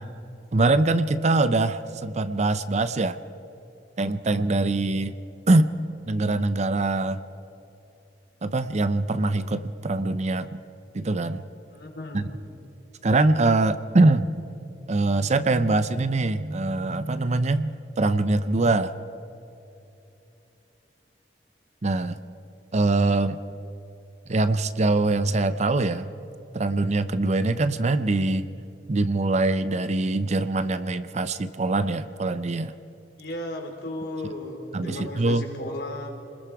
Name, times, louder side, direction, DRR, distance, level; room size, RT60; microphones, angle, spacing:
voice 1, 0.5-3.2 4.0-5.1 5.5-5.7 6.1-7.2 8.4-10.5 10.9-11.4 12.1-12.2 13.0-14.3 14.9-18.9 21.8-22.2 22.7-23.4 24.3-26.1 26.5-28.5 28.9-32.7 34.7-35.5, right 2 dB, 40° right, 12 dB, 0.6 m, -23 dB
voice 2, 11.7-12.3 33.2-36.1, left 1 dB, 65° left, 1 dB, 3.6 m, -35 dB
28.5 x 21.0 x 4.8 m, 2.8 s
head